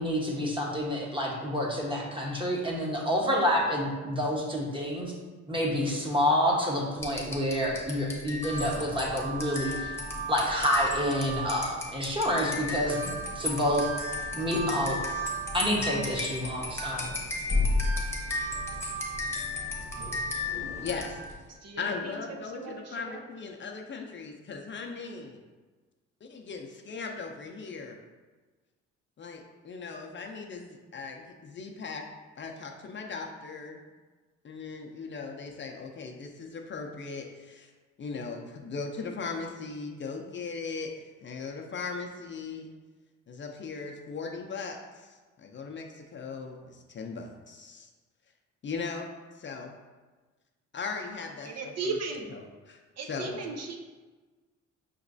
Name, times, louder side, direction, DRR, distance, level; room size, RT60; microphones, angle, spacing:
voice 1, 0.0-5.1 5.5-9.9 10.3-13.0 13.3-13.9 14.3-15.0 15.5-17.2, equal, 15° right, -2 dB, 1.1 m, -28 dB
sound 1, 7.0-21.4, left 1 dB, 10° left, 1.0 m, -33 dB
voice 2, 20.8-21.2 21.8-25.4 26.2-28.0 29.2-32.0 32.4-33.9 34.4-37.7 38.0-42.7 43.3-47.9 48.6-49.1 49.3-49.7 50.7-51.7 52.3-52.8 53.1-53.4, left 4 dB, 40° left, 2 dB, 0.5 m, -38 dB
voice 3, 21.5-22.1 22.5-23.2 51.4-52.3 53.0-53.8, right 4 dB, 55° right, 2 dB, 0.6 m, -36 dB
5.7 x 3.0 x 2.6 m, 1.3 s
cardioid pair, 90°, 30 cm